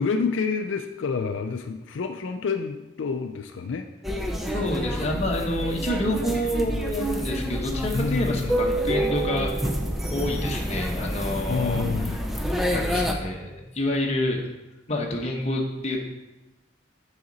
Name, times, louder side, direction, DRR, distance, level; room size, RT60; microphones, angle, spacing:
voice 1, 0.0-3.9 7.9-8.5 11.5-12.2, left 5 dB, 80° left, 6 dB, 0.4 m, -28 dB
sound 1, 4.0-13.1, equal, ahead, 0.5 m, -28 dB
voice 2, 4.5-9.5 10.1-12.1 12.7-14.4 14.9-16.0, left 1 dB, 35° left, 0 dB, 1.0 m, -28 dB
7.8 x 5.0 x 4.0 m, 1.0 s
head